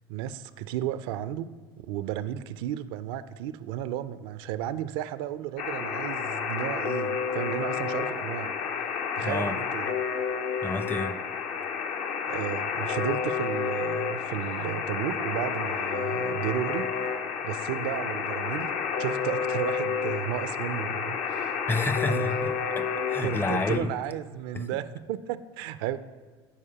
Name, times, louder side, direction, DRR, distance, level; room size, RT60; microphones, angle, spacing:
voice 1, 0.1-1.6 1.9-8.5 8.8-9.9 12.2-16.9 17.4-18.7 19.0-21.6 22.1-22.3 23.2-26.0, right 11 dB, 70° right, 0.4 m, -33 dB
Alarm, 5.6-23.8, left 6 dB, 60° left, 0.8 m, -30 dB
voice 2, 9.2-9.6 10.6-11.2 21.7-23.9 24.5-24.7, left 3 dB, 15° left, 0.5 m, -30 dB
14.0 x 4.7 x 2.8 m
hypercardioid pair, 75°, 13 cm